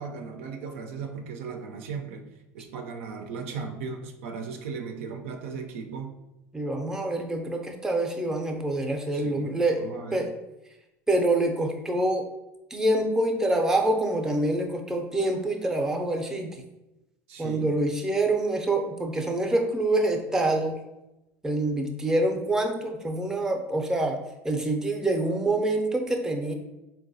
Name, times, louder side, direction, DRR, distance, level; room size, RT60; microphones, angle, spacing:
voice 1, 0.0-2.2 2.5-6.2 9.1-10.2 17.3-17.8, right 5 dB, 90° right, 4 dB, 0.4 m, -37 dB
voice 2, 6.5-10.3 11.1-12.3 12.7-16.6 17.4-20.8 21.4-24.2 24.4-26.5, right 2 dB, 10° right, 3 dB, 0.5 m, -26 dB
3.9 x 2.2 x 2.6 m, 0.95 s
supercardioid pair, 105°, 7 cm